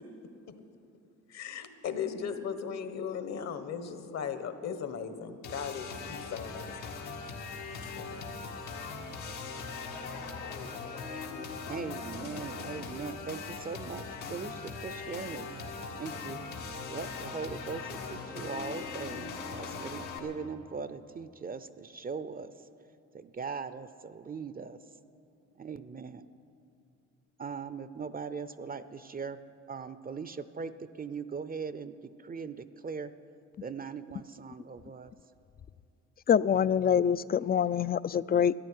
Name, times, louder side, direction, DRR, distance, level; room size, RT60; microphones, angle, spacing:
voice 1, 1.3-6.9 8.0-8.4, left 7 dB, 60° left, 9 dB, 1.4 m, -37 dB
sound 1, 5.4-20.2, left 4 dB, 85° left, 1.9 m, -40 dB
voice 2, 11.7-16.4 16.9-22.7 23.1-24.8 25.6-26.2 27.4-29.4 29.7-33.1 33.6-35.1, right 5 dB, 30° right, 13 dB, 0.6 m, -40 dB
voice 3, 36.3-38.5, left 8 dB, 30° left, 18 dB, 0.4 m, -25 dB
13.5 x 10.5 x 9.5 m, 2.5 s
cardioid pair, 90°, 30 cm